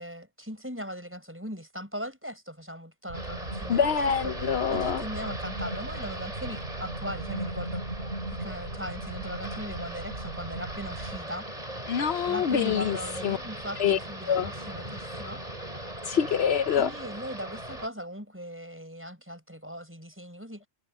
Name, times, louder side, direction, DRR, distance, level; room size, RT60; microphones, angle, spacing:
voice 1, 0.0-4.1 4.7-7.8 8.3-11.5 12.3-15.4 16.8-20.7, equal, 10° right, 5.4 m, -39 dB
sound 1, 3.1-17.9, right 1 dB, 35° right, 5.4 m, -39 dB
sound 2, 3.1-11.2, right 2 dB, 80° right, 2.7 m, -38 dB
voice 2, 3.7-5.0 11.9-13.0 13.2-13.4 13.8-14.0 14.3-14.5 16.0-16.9, left 8 dB, 75° left, 1.0 m, -25 dB
omnidirectional pair, 1.1 m